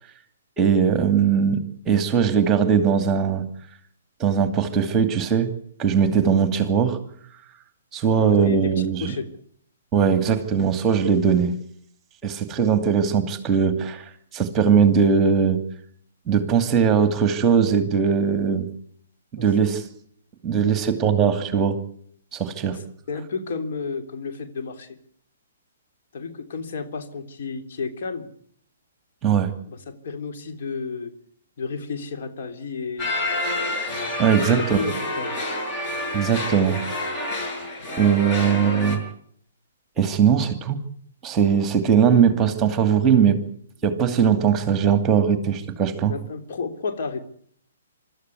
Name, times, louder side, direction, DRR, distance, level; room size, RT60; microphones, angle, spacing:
voice 1, 0.6-1.6 1.9-3.4 4.2-5.5 5.8-7.0 7.9-9.1 9.9-11.5 12.2-14.0 14.3-15.6 16.3-18.7 19.3-19.8 20.4-21.8 22.3-22.8 29.2-29.5 34.2-34.9 36.1-36.8 38.0-39.0 40.0-40.8 41.2-43.4 43.8-46.1, right 7 dB, 20° right, 10 dB, 2.6 m, -20 dB
voice 2, 8.1-9.3 19.4-19.5 22.7-24.9 26.1-28.3 29.7-31.1 31.6-33.1 34.4-35.4 46.1-47.2, left 4 dB, 55° left, 6 dB, 3.6 m, -32 dB
sound 1, 33.0-39.0, left 2 dB, 30° left, 7.1 m, -28 dB
25.5 x 13.5 x 9.7 m, 0.64 s
hypercardioid pair, 130°, 0 cm